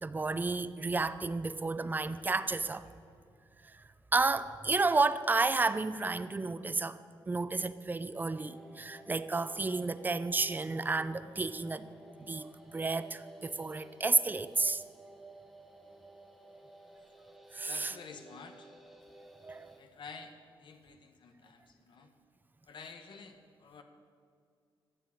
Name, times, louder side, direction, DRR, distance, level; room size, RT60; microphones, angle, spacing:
voice 1, 0.0-2.8 4.1-7.0 7.3-11.9 12.3-14.8 17.5-17.9 19.4-19.7, right 3 dB, 20° right, 0.5 m, -31 dB
sound 1, 8.2-19.8, right 1 dB, ahead, 1.5 m, -54 dB
voice 2, 17.6-18.7 19.8-22.1 22.7-23.8, left 5 dB, 65° left, 1.0 m, -50 dB
11.5 x 7.3 x 8.8 m
cardioid pair, 85°, 9 cm